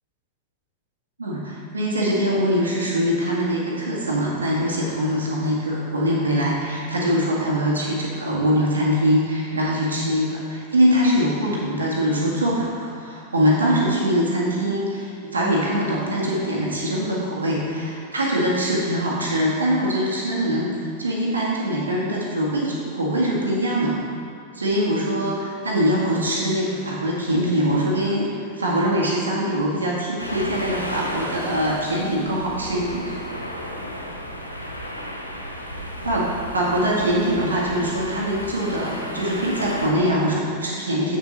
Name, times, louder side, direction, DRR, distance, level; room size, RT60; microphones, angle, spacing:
voice 1, 1.2-20.7 21.0-24.0 24.5-28.3 28.6-33.2 36.0-41.2, equal, 75° right, -4 dB, 1.8 m, -23 dB
sound 1, 30.2-39.9, equal, 90° left, 0.7 m, -33 dB
8.1 x 6.7 x 4.1 m, 2.5 s
figure-of-eight pair, 90°, 0 cm